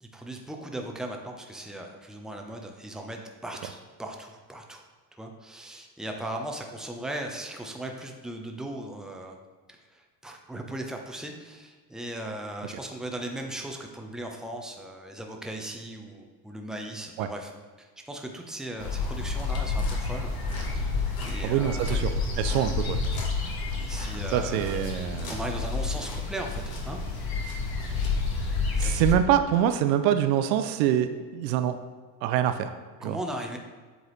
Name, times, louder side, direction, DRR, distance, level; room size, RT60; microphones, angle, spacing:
voice 1, 0.0-4.8 5.2-9.4 9.9-17.5 17.8-20.3 20.7-20.8 21.2-22.0 23.7-27.0 28.4-29.2 33.0-33.6, right 1 dB, ahead, 2 dB, 0.7 m, -38 dB
sound 1, 18.8-29.1, left 4 dB, 45° left, 1.4 m, -29 dB
voice 2, 21.4-23.0 24.3-25.4 28.8-31.8 32.2-32.7 33.0-33.2, right 10 dB, 80° right, 9 dB, 0.6 m, -25 dB
7.9 x 3.9 x 3.1 m, 1.5 s
hypercardioid pair, 80°, 50 cm